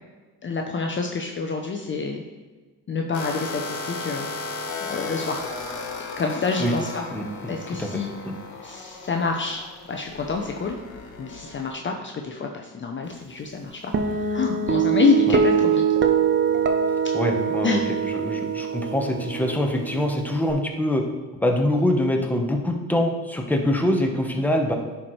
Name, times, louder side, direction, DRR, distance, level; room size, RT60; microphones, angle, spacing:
voice 1, 0.4-2.2 2.9-4.3 4.8-5.5 6.2-7.0 7.5-8.1 8.6-10.8 11.2-15.8 17.6-17.8, left 5 dB, 30° left, 2 dB, 0.7 m, -27 dB
sound 1, 3.1-11.7, left 3 dB, 85° left, 1.4 m, -35 dB
voice 2, 7.1-7.5 7.8-8.3 15.3-15.4 17.1-17.8 18.1-21.0 21.4-24.7, left 1 dB, 5° left, 2 dB, 1.1 m, -24 dB
Guitar, 13.9-20.5, right 7 dB, 30° right, 0.7 m, -23 dB
10.5 x 4.6 x 3.2 m, 1.3 s
supercardioid pair, 80°, 36 cm